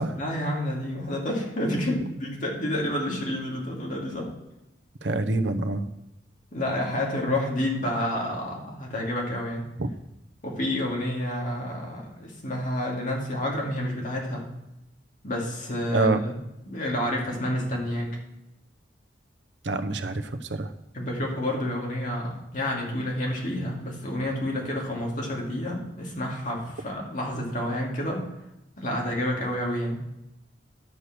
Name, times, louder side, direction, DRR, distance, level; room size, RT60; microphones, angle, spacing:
voice 1, 0.1-4.3 6.5-9.6 10.4-14.4 15.2-16.4 16.7-18.1 20.9-28.2 28.8-30.0, left 1 dB, 45° left, -2 dB, 2.4 m, -29 dB
voice 2, 5.0-5.9 9.8-9.9 15.9-16.2 19.6-20.7, right 2 dB, 80° right, 9 dB, 0.8 m, -26 dB
11.0 x 6.6 x 6.1 m, 0.91 s
head